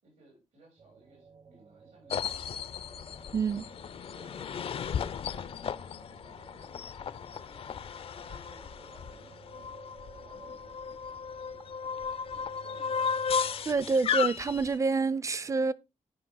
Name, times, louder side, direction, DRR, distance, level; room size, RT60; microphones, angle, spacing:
voice 1, 0.0-3.0 3.5-3.8 4.1-5.8 6.1-11.0 11.4-13.3, right 2 dB, 85° right, 6.4 m, -60 dB
sound 1, 0.8-14.0, right 5 dB, 55° right, 1.1 m, -55 dB
sound 2, 2.1-14.8, left 7 dB, 50° left, 0.4 m, -35 dB
voice 2, 3.3-3.6 13.7-15.7, right 4 dB, 25° right, 0.4 m, -27 dB
12.5 x 5.1 x 3.8 m
wide cardioid pair, 180°, 13 cm